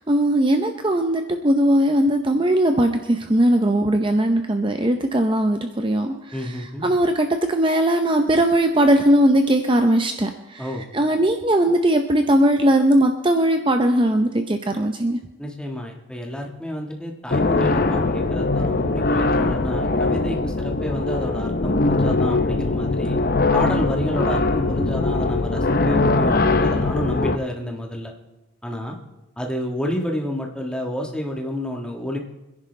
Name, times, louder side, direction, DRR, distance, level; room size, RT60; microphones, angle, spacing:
voice 1, 0.0-6.1 6.8-10.7 10.9-15.2, right 1 dB, 25° right, 6 dB, 0.7 m, -19 dB
voice 2, 6.3-6.9 10.6-10.9 15.4-23.2 23.5-28.1 28.6-29.0 29.4-32.2, left 1 dB, 5° left, 1 dB, 1.5 m, -29 dB
sound 1, 17.3-27.4, left 3 dB, 50° left, 0.7 m, -21 dB
26.0 x 10.5 x 3.3 m, 1.0 s
head